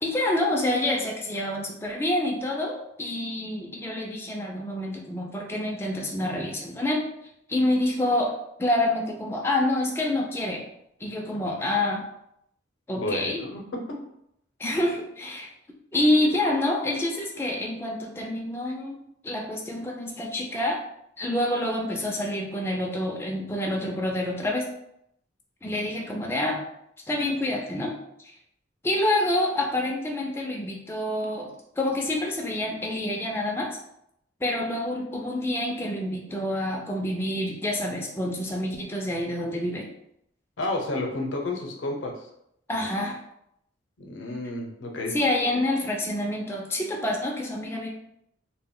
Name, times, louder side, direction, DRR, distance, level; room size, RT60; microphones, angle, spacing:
voice 1, 0.0-7.0 7.5-8.3 8.6-10.7 11.0-12.0 12.9-13.4 14.6-15.5 15.9-19.0 19.2-20.8 21.2-24.7 25.6-26.6 27.1-27.9 28.8-31.5 31.8-33.8 34.4-39.9 42.7-43.2 45.1-47.9, left 1 dB, 15° left, -1 dB, 0.3 m, -27 dB
voice 2, 13.0-13.6 40.6-42.3 44.0-45.2, left 2 dB, 80° left, 1 dB, 0.6 m, -31 dB
2.2 x 2.1 x 3.6 m, 0.77 s
head